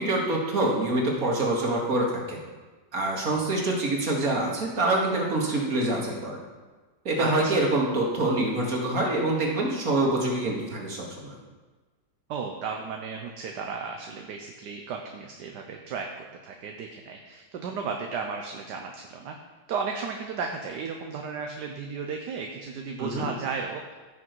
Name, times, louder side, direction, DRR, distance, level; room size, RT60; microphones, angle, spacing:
voice 1, 0.0-2.4 2.9-6.4 7.1-11.4 23.0-23.3, right 2 dB, 45° right, -2 dB, 2.4 m, -26 dB
voice 2, 7.2-7.6 12.3-16.1 16.4-19.3 19.7-23.9, right 5 dB, 65° right, 3 dB, 1.4 m, -34 dB
16.0 x 6.3 x 4.7 m, 1.3 s
omnidirectional pair, 2.1 m